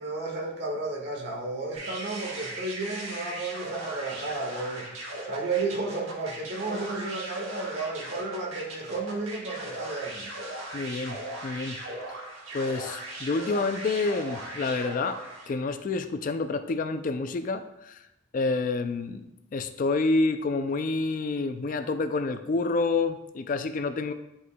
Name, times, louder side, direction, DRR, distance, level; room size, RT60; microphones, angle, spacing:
voice 1, 0.0-4.9 5.2-10.3, right 3 dB, 55° right, -1 dB, 1.4 m, -33 dB
sound 1, 1.7-15.6, right 1 dB, 80° right, 1.3 m, -38 dB
voice 2, 10.7-11.8 12.1-12.2 12.5-15.2 15.5-18.0 18.3-24.1, left 3 dB, 40° left, 9 dB, 0.3 m, -28 dB
10.5 x 4.6 x 2.2 m, 0.91 s
head